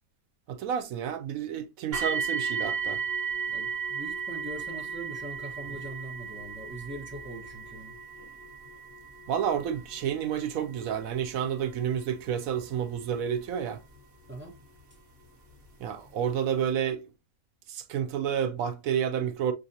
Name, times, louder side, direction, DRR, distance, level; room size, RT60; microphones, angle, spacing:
voice 1, 0.5-3.0 9.3-13.8 15.8-17.0 17.7-19.5, right 8 dB, 80° right, 1.0 m, -30 dB
sound 1, 1.9-14.8 15.6-15.7 16.3-16.4, right 6 dB, 45° right, 1.4 m, -36 dB
voice 2, 3.5-7.9 14.3-14.5, right 2 dB, 10° right, 0.9 m, -41 dB
7.0 x 2.6 x 2.7 m
omnidirectional pair, 1.5 m